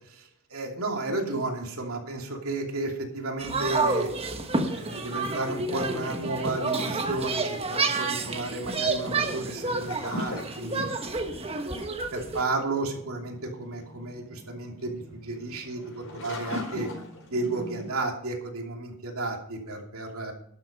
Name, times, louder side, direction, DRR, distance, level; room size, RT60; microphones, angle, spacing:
voice 1, 0.1-4.1 4.6-10.8 11.4-11.8 12.1-16.9 17.3-20.3, right 2 dB, 75° right, 2 dB, 2.8 m, -33 dB
sound 1, 3.4-12.4, right 3 dB, 25° right, 1.3 m, -29 dB
sound 2, 9.6-17.9, left 1 dB, 65° left, 4.7 m, -40 dB
12.0 x 8.3 x 5.3 m, 0.69 s
head